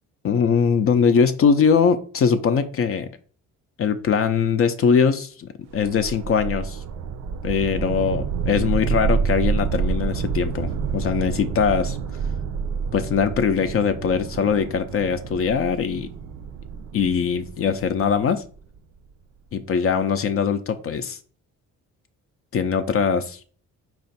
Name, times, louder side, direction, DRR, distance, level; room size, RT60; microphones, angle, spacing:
voice 1, 0.2-3.1 3.8-6.8 7.4-12.0 12.9-16.1 16.9-18.4 19.5-21.2 22.5-23.5, left 6 dB, 50° left, 9 dB, 0.4 m, -21 dB
sound 1, 5.7-18.8, right 6 dB, 65° right, 0.5 m, -28 dB
4.3 x 2.4 x 4.0 m, 0.42 s
cardioid pair, 90°, 30 cm